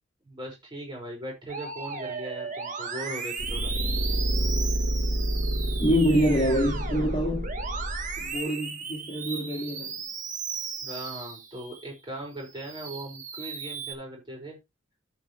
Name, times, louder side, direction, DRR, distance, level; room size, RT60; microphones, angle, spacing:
voice 1, 0.3-3.7 10.8-14.6, right 1 dB, 25° right, 5.8 m, -39 dB
Musical instrument, 1.5-11.9 12.4-13.9, right 5 dB, 40° right, 1.4 m, -36 dB
sound 1, 3.4-8.3, equal, 85° right, 2.8 m, -29 dB
voice 2, 5.8-7.5 8.2-10.0, equal, 25° left, 2.4 m, -25 dB
13.5 x 5.8 x 3.3 m
head